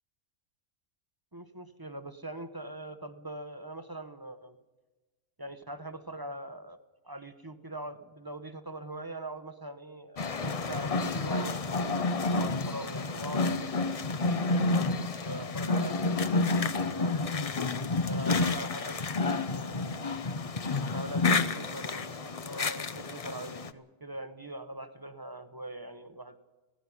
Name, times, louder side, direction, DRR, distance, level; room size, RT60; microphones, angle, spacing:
voice 1, 1.3-4.6 5.4-6.8 7.0-14.1 14.3-16.0 16.4-17.5 18.0-20.3 20.9-26.5, right 1 dB, 15° right, 10 dB, 0.9 m, -42 dB
sound 1, 10.2-23.7, left 3 dB, 35° left, 0.6 m, -30 dB
17.0 x 15.5 x 9.8 m, 1.2 s
omnidirectional pair, 1.5 m